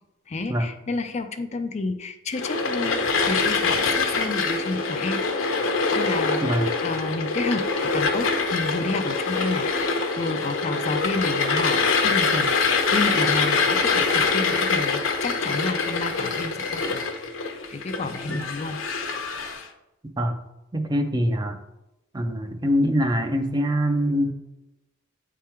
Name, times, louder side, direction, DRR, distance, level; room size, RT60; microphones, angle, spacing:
voice 1, 0.3-3.0 3.2-5.2 5.9-17.0 17.7-18.8, left 3 dB, 35° left, 8 dB, 0.4 m, -30 dB
sound 1, 2.3-19.6, left 4 dB, 70° left, 0.8 m, -24 dB
voice 2, 6.4-6.7 18.3-18.4 20.2-20.4 20.7-21.6 22.1-24.3, equal, 20° right, 6 dB, 0.5 m, -23 dB
8.3 x 3.6 x 4.3 m, 0.94 s
head